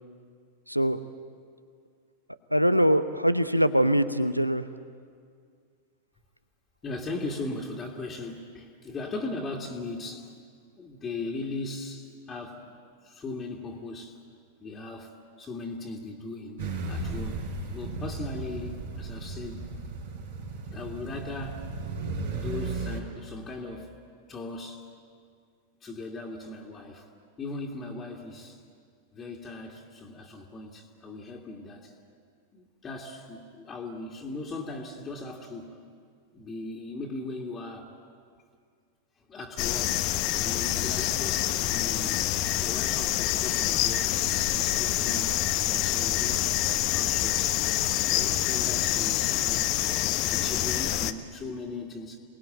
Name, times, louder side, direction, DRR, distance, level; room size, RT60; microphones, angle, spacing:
voice 1, 0.7-1.0 2.5-4.6, equal, 90° right, 13 dB, 0.8 m, -23 dB
voice 2, 6.8-10.3 10.8-14.2 14.6-19.7 20.7-21.7 22.2-23.9 24.3-24.9 25.8-27.1 27.4-28.6 29.1-31.9 32.5-35.8 36.3-37.9 39.3-40.0 40.3-42.3 42.6-47.6 48.1-52.2, left 2 dB, 20° left, -1 dB, 2.2 m, -38 dB
sound 1, 16.6-23.0, right 3 dB, 60° right, 4.7 m, -35 dB
sound 2, 39.6-51.1, left 14 dB, 40° left, 1.0 m, -26 dB
28.0 x 20.0 x 9.0 m, 2.1 s
figure-of-eight pair, 90°, 0 cm